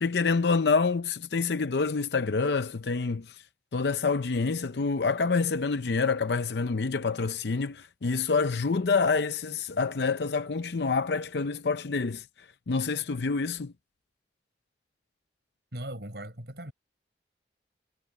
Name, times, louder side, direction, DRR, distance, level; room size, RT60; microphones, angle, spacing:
voice 1, 0.0-3.4 3.7-12.3 12.7-13.7, left 4 dB, 75° left, 0.6 m, -27 dB
voice 2, 15.7-16.7, right 1 dB, 70° right, 7.0 m, -38 dB
head